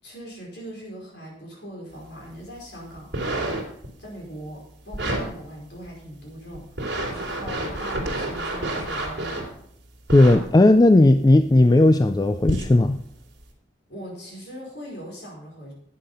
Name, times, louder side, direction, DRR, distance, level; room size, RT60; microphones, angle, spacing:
voice 1, 0.0-3.1 4.0-9.6 13.9-15.7, equal, 60° left, -2 dB, 5.0 m, -40 dB
sound 1, 3.0-3.9 4.9-5.2 5.8-5.9 6.5-9.5 10.1-10.4 11.3-11.4 12.4-12.8 13.4-13.5, right 1 dB, 60° right, 3.3 m, -28 dB
voice 2, 10.1-13.0, left 2 dB, 20° left, 10 dB, 0.3 m, -15 dB
11.5 x 8.6 x 5.6 m, 0.70 s
head